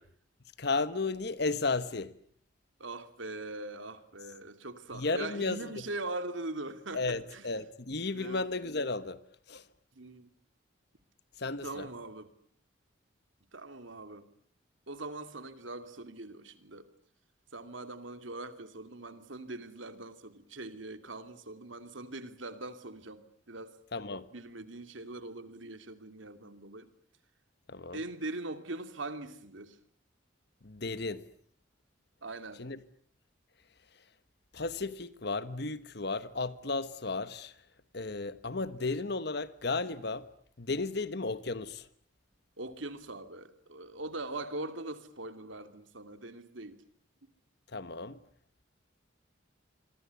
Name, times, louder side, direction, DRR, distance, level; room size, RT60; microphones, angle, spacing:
voice 1, 0.6-2.1 4.9-5.7 6.9-9.2 9.5-9.6 11.4-11.9 23.9-24.3 27.7-28.0 30.6-31.2 32.6-32.8 34.5-37.6 37.9-40.3 40.6-41.9 47.7-48.2, left 3 dB, 55° left, 1.2 m, -34 dB
voice 2, 2.8-7.5 8.1-8.4 9.9-10.3 11.6-12.3 13.5-14.3 14.9-16.9 17.5-23.8 24.3-26.9 27.9-29.8 32.2-32.6 42.6-46.8, right 2 dB, 75° right, 2.7 m, -41 dB
26.5 x 24.0 x 8.3 m
head